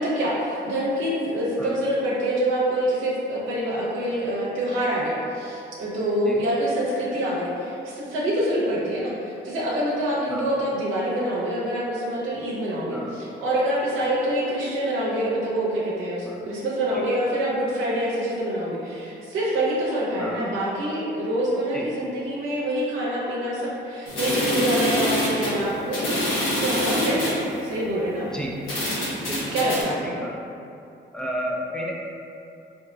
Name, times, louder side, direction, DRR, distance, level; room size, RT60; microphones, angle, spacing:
voice 1, 0.0-28.3 29.5-30.2, right 1 dB, 85° right, -6 dB, 0.7 m, -26 dB
sound 1, 24.1-27.4 28.1-28.2 28.7-29.8, equal, 90° left, 1.1 m, -26 dB
voice 2, 29.3-29.7 30.0-30.4 31.1-32.0, equal, 5° left, -2 dB, 0.4 m, -32 dB
3.7 x 2.9 x 2.3 m, 2.7 s
cardioid pair, 90°, 20 cm